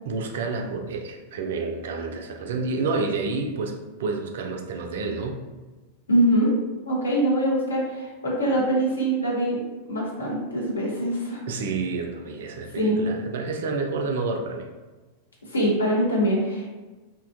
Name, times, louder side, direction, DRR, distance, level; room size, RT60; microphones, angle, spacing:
voice 1, 0.0-5.4 11.5-14.7, right 4 dB, 60° right, 3 dB, 0.3 m, -29 dB
voice 2, 6.1-6.5 6.8-9.6 9.9-11.4 12.8-13.1 15.5-16.7, right 1 dB, 75° left, -3 dB, 0.7 m, -23 dB
2.7 x 2.2 x 2.5 m, 1.2 s
figure-of-eight pair, 90°, 0 cm